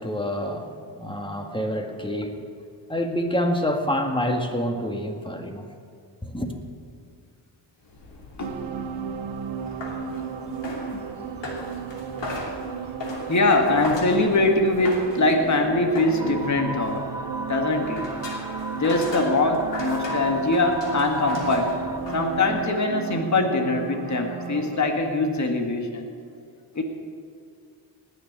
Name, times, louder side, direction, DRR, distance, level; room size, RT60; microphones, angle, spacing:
voice 1, 0.0-2.4 2.9-5.7 6.2-6.5, equal, 10° left, 4 dB, 1.9 m, -27 dB
sound 1, 7.8-22.7, left 2 dB, 75° left, 3.0 m, -38 dB
voice 2, 8.4-8.9 10.9-11.1 13.3-17.1 17.5-18.2 18.5-21.8 22.1-26.1 26.8-26.9, left 2 dB, 40° left, 4 dB, 1.8 m, -23 dB
sound 2, 8.4-24.8, right 7 dB, 90° right, 0.9 m, -35 dB
sound 3, 16.2-22.0, right 2 dB, 10° right, 0.8 m, -35 dB
18.5 x 6.5 x 8.9 m, 2.2 s
cardioid pair, 70°, 43 cm